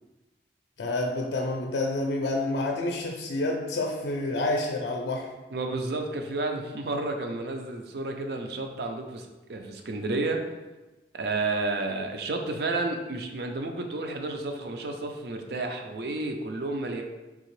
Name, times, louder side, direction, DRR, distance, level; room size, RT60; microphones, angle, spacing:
voice 1, 0.8-5.3, left 2 dB, 75° left, 0 dB, 0.4 m, -28 dB
voice 2, 5.5-10.4 11.1-17.0, right 2 dB, 65° right, 4 dB, 0.4 m, -31 dB
3.6 x 2.8 x 3.1 m, 1.1 s
head